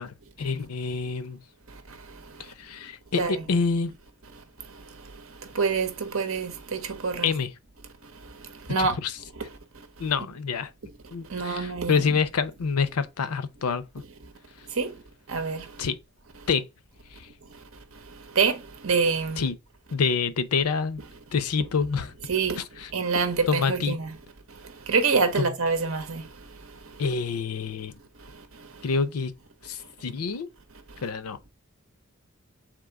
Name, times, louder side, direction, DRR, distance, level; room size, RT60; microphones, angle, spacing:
voice 1, 0.0-1.4 2.4-3.9 7.2-7.5 8.8-9.2 10.0-10.7 11.1-13.8 15.8-16.0 16.5-16.7 17.1-17.3 19.4-19.5 19.9-21.0 21.3-22.1 22.6-22.9 23.5-24.0 25.4-25.5 27.0-27.9 28.8-29.3 29.6-30.5 31.0-31.4, left 5 dB, 90° left, 0.6 m, -27 dB
voice 2, 5.5-7.3 8.7-8.9 11.3-12.0 14.8-14.9 15.3-15.6 18.4-18.6 18.8-19.4 22.3-22.6 22.9-24.1 24.9-26.2, right 5 dB, 65° right, 1.0 m, -25 dB
3.7 x 2.8 x 4.7 m
head